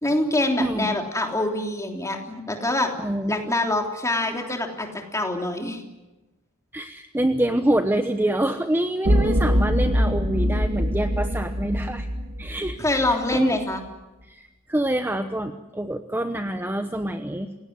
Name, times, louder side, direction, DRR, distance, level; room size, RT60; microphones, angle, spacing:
voice 1, 0.0-2.9 3.3-5.8 12.8-13.8, left 2 dB, 15° left, 3 dB, 3.4 m, -25 dB
voice 2, 0.6-0.9 3.0-3.5 6.7-12.1 12.4-12.8 13.0-13.6 14.3-17.5, right 1 dB, 10° right, 7 dB, 1.0 m, -26 dB
sound 1, 9.0-13.4, equal, 50° right, 2.2 m, -23 dB
29.0 x 17.5 x 9.6 m, 1.1 s
head